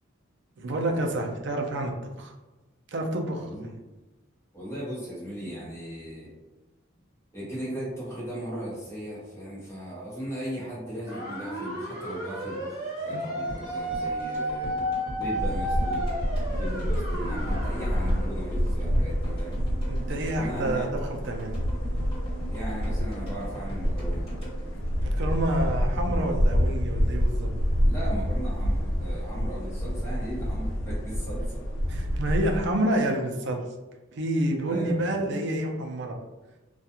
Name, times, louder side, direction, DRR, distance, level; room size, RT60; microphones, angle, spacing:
voice 1, 0.6-2.3 2.9-3.7 13.1-13.2 19.9-21.5 25.0-27.5 31.9-33.6 34.1-36.2, right 1 dB, 60° right, 2 dB, 0.4 m, -28 dB
voice 2, 4.5-6.3 7.3-14.7 15.1-16.1 16.6-19.6 20.3-20.9 22.5-24.3 24.7-24.8 25.6-25.8 27.8-31.6 34.7-35.2, right 1 dB, 15° left, -8 dB, 1.0 m, -37 dB
sound 1, 11.1-18.3, equal, 25° right, 1.2 m, -33 dB
sound 2, 13.5-25.7 25.9-26.0, right 1 dB, 30° left, 1.4 m, -41 dB
sound 3, 15.4-32.7, equal, 90° left, 0.5 m, -28 dB
2.4 x 2.3 x 2.8 m, 1.1 s
head